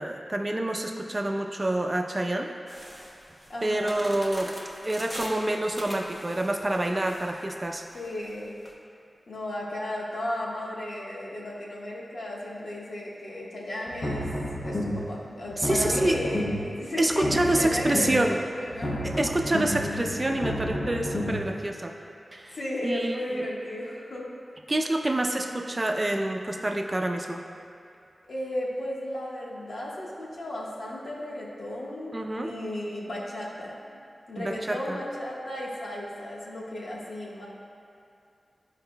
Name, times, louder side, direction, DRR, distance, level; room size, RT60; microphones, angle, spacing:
voice 1, 0.0-2.5 3.6-4.5 4.8-7.8 15.6-16.2 17.0-18.4 19.0-21.9 22.3-22.6 22.8-23.4 24.7-27.4 32.1-32.5 34.4-35.0, right 1 dB, 30° right, 2 dB, 0.5 m, -27 dB
sound 1, 2.7-8.7, equal, 20° left, 1.1 m, -42 dB
voice 2, 3.5-4.1 7.9-8.5 9.3-14.3 14.6-18.2 18.6-19.1 19.4-19.5 22.5-24.2 28.3-33.7 34.3-37.5, left 1 dB, 75° left, -5 dB, 1.4 m, -34 dB
sound 2, 13.9-15.2 15.5-16.8 17.1-18.4 18.7-21.5, equal, 55° left, 0.9 m, -31 dB
13.5 x 4.8 x 2.2 m, 2.5 s
wide cardioid pair, 80°, 0 cm